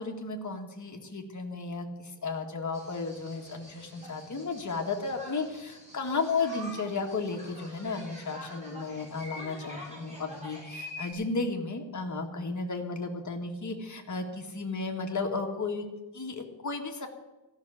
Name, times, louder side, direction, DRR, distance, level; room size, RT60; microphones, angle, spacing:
voice 1, 0.0-15.9 16.1-17.1, left 4 dB, 45° left, 3 dB, 1.8 m, -34 dB
sound 1, 2.7-11.1, left 1 dB, 15° right, 4.2 m, -46 dB
14.5 x 6.4 x 9.7 m, 1.1 s
wide cardioid pair, 160°, 42 cm